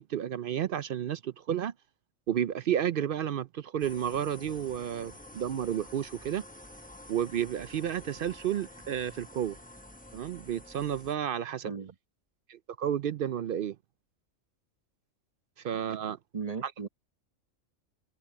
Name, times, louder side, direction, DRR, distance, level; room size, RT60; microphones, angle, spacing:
voice 1, 0.0-1.7 2.3-6.4 7.1-9.6 10.1-11.7 12.5-13.8 15.6-16.2 16.6-16.7, right 9 dB, 65° right, 0.5 m, -31 dB
sound 1, 3.8-11.1, left 1 dB, 10° left, 0.8 m, -49 dB
voice 2, 11.6-11.9 16.3-16.9, right 5 dB, 30° right, 1.1 m, -36 dB
omnidirectional pair, 1.3 m